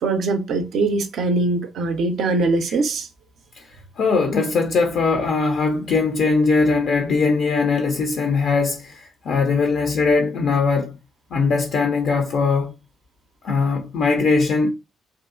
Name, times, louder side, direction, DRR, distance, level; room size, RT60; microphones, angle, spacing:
voice 1, 0.0-3.1, right 3 dB, 60° right, 0.4 m, -22 dB
voice 2, 4.0-11.0 11.3-12.7 13.4-14.7, left 4 dB, 60° left, 0.3 m, -20 dB
2.6 x 2.3 x 2.4 m
figure-of-eight pair, 40°, 0 cm